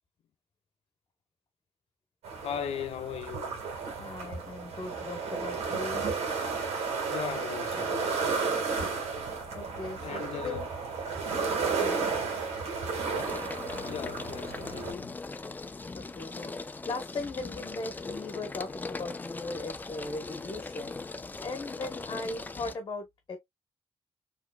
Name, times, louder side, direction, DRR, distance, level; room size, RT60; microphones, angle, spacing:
sound 1, 2.2-14.9, right 5 dB, 85° right, 1.7 m, -33 dB
voice 1, 2.4-3.6 7.1-8.2 10.0-10.6 13.8-15.1, left 8 dB, 75° left, 0.6 m, -38 dB
voice 2, 4.0-6.0 9.5-10.7 11.8-12.2 16.0-16.5 16.9-21.0 21.4-23.4, left 3 dB, 40° left, 0.9 m, -38 dB
sound 2, 10.7-11.2 11.6-22.8, left 3 dB, 15° left, 0.4 m, -40 dB
4.3 x 3.1 x 2.2 m
cardioid pair, 125°, 11 cm